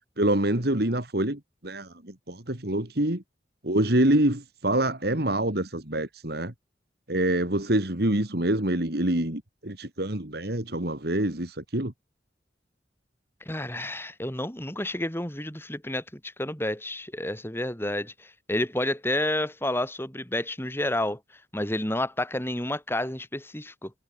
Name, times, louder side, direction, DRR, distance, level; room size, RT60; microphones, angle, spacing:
voice 1, 0.2-3.2 3.6-6.5 7.1-11.9, right 1 dB, 60° right, 2.9 m, -26 dB
voice 2, 13.5-21.2 21.5-23.9, left 1 dB, 15° left, 2.6 m, -30 dB
head